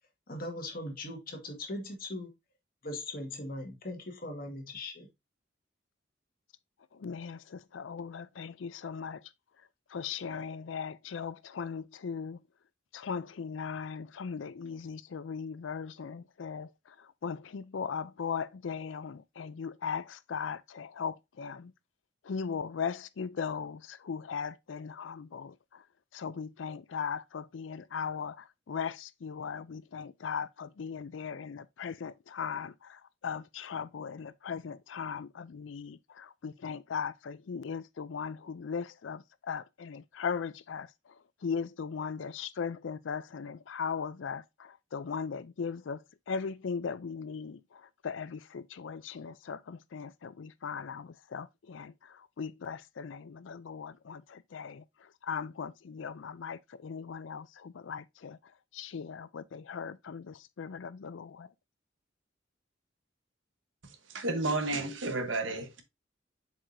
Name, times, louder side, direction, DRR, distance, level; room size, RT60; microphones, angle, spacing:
voice 1, 0.3-2.3 2.8-5.1, left 1 dB, 50° left, 1.7 m, -39 dB
voice 2, 6.9-9.2 9.9-12.4 12.9-21.7 22.2-25.8 26.1-40.9 41.4-46.0 46.3-54.8 55.2-58.4 58.7-61.5, left 6 dB, 85° left, 0.4 m, -38 dB
voice 3, 64.1-65.8, right 2 dB, 85° right, 1.2 m, -31 dB
7.5 x 4.8 x 2.7 m
head